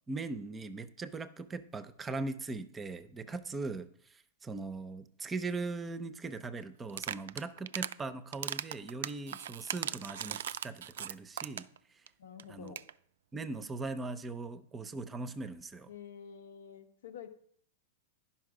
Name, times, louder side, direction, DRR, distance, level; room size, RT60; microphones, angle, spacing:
voice 1, 0.1-11.7 12.5-12.7 13.3-15.9, right 3 dB, 15° right, 13 dB, 0.6 m, -40 dB
sound 1, 6.9-8.0 8.3-11.8 12.1-12.2 12.4-12.5 12.7-12.9, right 10 dB, 80° right, 0.3 m, -38 dB
voice 2, 12.2-12.9 15.9-17.3, left 8 dB, 85° left, 8 dB, 1.0 m, -48 dB
10.5 x 5.8 x 4.8 m, 0.64 s
hypercardioid pair, 135°, 0 cm